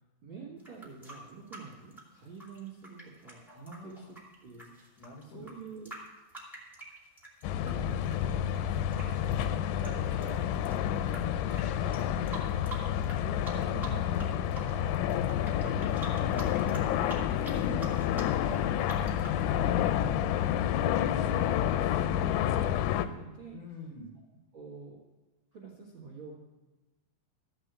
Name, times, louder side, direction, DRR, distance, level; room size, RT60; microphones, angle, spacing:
voice 1, 0.2-4.1 4.4-4.9 5.2-5.9 7.6-9.3 11.1-11.7 12.0-12.3 13.0-15.0 15.5-19.6 19.9-20.0 21.2-23.6 24.1-24.2 24.5-25.0 25.5-26.4, right 5 dB, 85° right, -5 dB, 1.0 m, -47 dB
sound 1, 0.6-7.7 8.0-11.2 11.5-11.6 11.9-13.2 13.4-14.3 14.5-19.4, right 2 dB, ahead, 0.9 m, -45 dB
voice 2, 3.7-4.2 5.0-5.5 9.3-11.1 11.4-11.6 12.6-12.9 23.5-24.1, left 2 dB, 70° left, 1 dB, 2.0 m, -47 dB
sound 2, 7.4-23.1, left 10 dB, 90° left, 3.0 m, -29 dB
14.0 x 5.5 x 8.0 m, 1.1 s
omnidirectional pair, 5.3 m